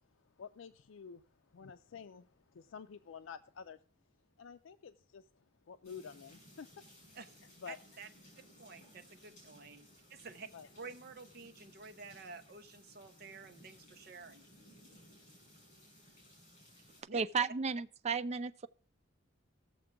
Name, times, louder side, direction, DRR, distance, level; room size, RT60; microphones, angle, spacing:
voice 1, 0.0-3.8 4.4-7.2 7.6-7.8 10.5-10.7, left 6 dB, 80° left, 0.4 m, -51 dB
sound 1, 5.8-17.0, equal, 35° left, 6.4 m, -60 dB
voice 2, 7.7-8.1 8.6-10.5 10.7-14.4 17.1-17.2, right 4 dB, 50° right, 0.8 m, -51 dB
voice 3, 17.1-18.7, right 5 dB, 35° right, 0.4 m, -34 dB
16.5 x 6.8 x 3.7 m
head